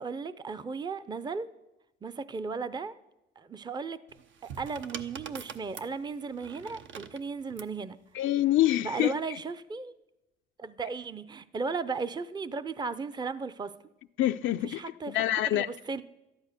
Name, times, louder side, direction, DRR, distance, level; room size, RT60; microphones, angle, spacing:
voice 1, 0.0-1.5 2.0-3.0 3.4-4.0 4.4-8.0 8.8-9.9 10.6-13.7 14.6-15.1 15.5-16.0, right 4 dB, 20° right, 0.5 m, -35 dB
sound 1, 4.1-7.8 8.8-9.2, right 7 dB, 75° right, 0.9 m, -44 dB
voice 2, 8.1-9.1 14.2-14.8 15.1-15.7, left 14 dB, 75° left, 0.4 m, -25 dB
13.0 x 10.5 x 6.6 m
cardioid pair, 90°, 20 cm